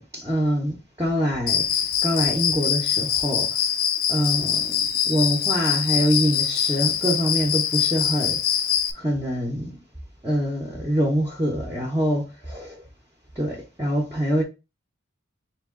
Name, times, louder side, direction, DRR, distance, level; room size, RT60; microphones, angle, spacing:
voice 1, 0.0-3.6 4.1-4.8 5.0-8.4 8.9-9.8 10.2-12.8 13.4-14.4, equal, 15° right, 0.6 m, -25 dB
Cricket, 1.5-8.9, left 9 dB, 45° left, 0.4 m, -24 dB
3.7 x 2.8 x 3.5 m
head